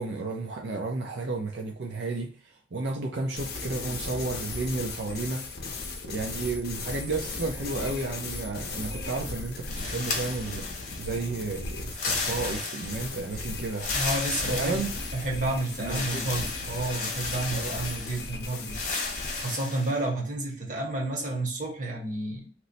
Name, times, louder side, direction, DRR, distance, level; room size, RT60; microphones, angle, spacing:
voice 1, 0.0-5.4 6.0-13.9 14.4-14.9 15.8-16.4 17.5-17.8, right 3 dB, 75° right, 0.5 m, -32 dB
sound 1, 3.4-19.4, left 3 dB, 60° left, 0.6 m, -37 dB
sound 2, 9.7-11.2 11.9-13.2 13.7-15.4 15.9-18.3 18.7-19.9, left 3 dB, 40° left, 1.0 m, -34 dB
voice 2, 13.9-14.8 15.1-18.8 19.3-22.5, right 2 dB, 45° right, 1.0 m, -31 dB
3.0 x 2.0 x 3.8 m
head